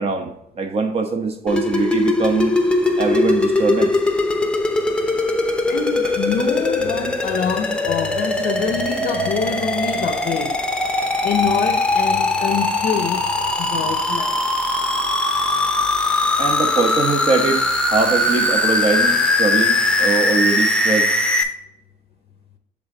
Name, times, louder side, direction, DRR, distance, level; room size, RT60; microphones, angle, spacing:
voice 1, 0.0-2.5 3.0-4.0 6.0-6.1 16.4-21.1, right 4 dB, 35° right, 1.0 m, -22 dB
sound 1, 1.5-21.4, left 2 dB, 5° left, 0.7 m, -20 dB
voice 2, 5.7-10.6 11.2-14.4, left 7 dB, 55° left, 0.6 m, -25 dB
7.2 x 3.6 x 3.8 m
cardioid pair, 110°, 17 cm